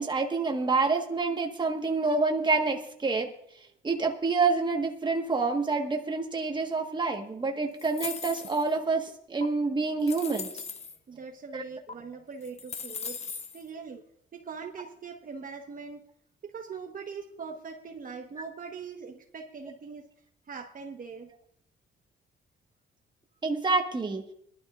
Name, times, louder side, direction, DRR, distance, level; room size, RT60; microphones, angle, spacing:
voice 1, 0.0-3.3 3.8-10.5 11.5-11.6 23.4-24.2, right 3 dB, 20° right, 3 dB, 1.4 m, -27 dB
sound 1, 7.8-8.8 9.4-9.5 10.0-11.0 11.9-12.0 12.4-13.6, left 5 dB, 35° left, 0.8 m, -38 dB
voice 2, 11.1-13.2 13.5-14.0 14.3-16.1 16.4-20.1 20.5-21.3, right 5 dB, 45° right, 2 dB, 1.3 m, -41 dB
21.5 x 12.0 x 2.5 m, 0.68 s
cardioid pair, 90°, 20 cm